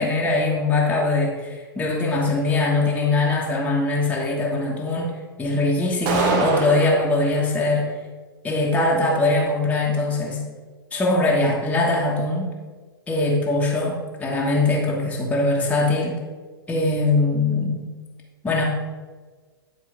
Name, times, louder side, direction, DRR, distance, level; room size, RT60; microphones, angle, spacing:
voice 1, 0.0-5.1 5.4-7.9 8.4-10.4 10.9-12.5 13.1-16.2 16.7-17.8 18.4-18.6, left 2 dB, 10° left, -3 dB, 1.3 m, -22 dB
sound 1, 6.1-7.1, right 3 dB, 40° right, 1.2 m, -23 dB
10.0 x 4.3 x 4.9 m, 1.4 s
figure-of-eight pair, 100°, 12 cm